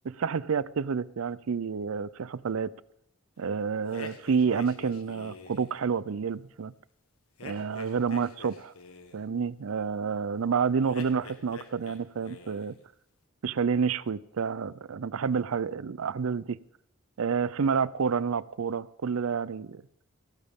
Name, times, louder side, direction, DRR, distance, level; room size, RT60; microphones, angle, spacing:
voice 1, 0.0-2.7 3.4-6.7 7.4-8.7 9.1-12.8 13.4-16.6 17.2-19.8, right 6 dB, 75° right, 19 dB, 0.5 m, -29 dB
sound 1, 3.9-5.8 7.4-9.2 10.9-12.0 12.2-12.8, left 4 dB, 85° left, 1.6 m, -46 dB
17.0 x 14.0 x 3.6 m, 0.75 s
head